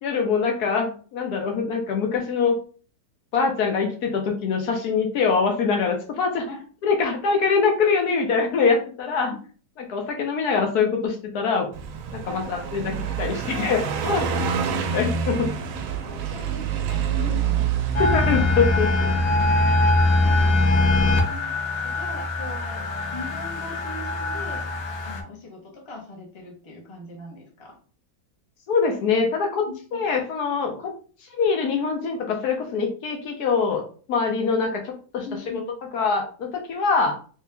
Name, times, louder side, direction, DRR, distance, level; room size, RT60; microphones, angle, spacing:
voice 1, 0.0-2.6 3.3-6.5 6.8-9.3 9.8-11.7 12.1-14.3 14.9-15.5 18.0-19.1 28.7-29.6 29.9-30.9 31.4-33.8 34.1-35.3 35.9-37.2, left 5 dB, 70° left, 2 dB, 1.2 m, -23 dB
Car passing by, 11.7-20.2, right 6 dB, 70° right, 0.9 m, -27 dB
voice 2, 12.3-12.6 14.3-14.5 16.0-17.7 18.4-18.5 20.2-22.9 23.1-24.7 25.0-27.8 29.7-30.0 35.2-35.6, left 2 dB, 20° left, -1 dB, 0.8 m, -40 dB
sound 1, 17.9-25.2, left 2 dB, 90° left, 1.4 m, -22 dB
3.2 x 2.9 x 3.3 m, 0.41 s
omnidirectional pair, 1.8 m